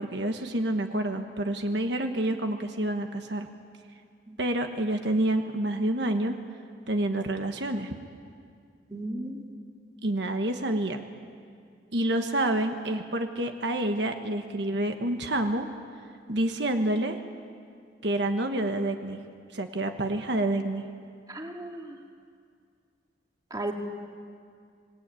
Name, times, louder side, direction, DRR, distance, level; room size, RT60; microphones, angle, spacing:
voice 1, 0.0-3.5 4.4-6.3 6.9-7.9 10.0-11.0 11.9-15.7 16.3-17.2 18.0-19.2 19.5-20.8, right 1 dB, 70° right, 5 dB, 1.4 m, -28 dB
voice 2, 8.9-9.4 21.3-22.0 23.5-23.7, right 1 dB, 20° right, 2 dB, 2.1 m, -35 dB
25.5 x 19.5 x 9.1 m, 2.3 s
head